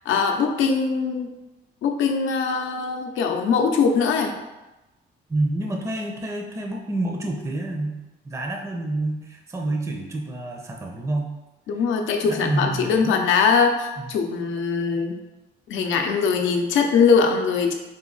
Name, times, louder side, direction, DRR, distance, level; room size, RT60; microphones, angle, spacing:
voice 1, 0.1-1.3 1.8-4.3 11.7-15.2 15.7-17.7, left 5 dB, 80° left, 4 dB, 0.6 m, -21 dB
voice 2, 5.3-11.3 11.7-11.8 12.2-13.3 14.0-14.1, right 2 dB, 15° right, 2 dB, 0.5 m, -28 dB
4.0 x 2.8 x 3.9 m, 1.0 s
cardioid pair, 90°, 20 cm